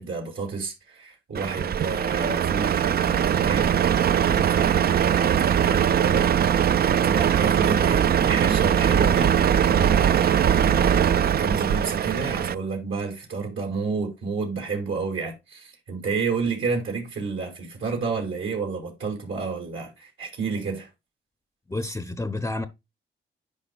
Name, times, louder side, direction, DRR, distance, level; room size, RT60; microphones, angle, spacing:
voice 1, 0.0-3.7 4.2-20.9, right 4 dB, 75° right, 2.5 m, -30 dB
Truck, 1.3-12.5, right 9 dB, 50° right, 0.4 m, -21 dB
voice 2, 21.7-22.7, left 2 dB, 15° left, 0.6 m, -29 dB
10.0 x 4.9 x 2.3 m
cardioid pair, 80°, 21 cm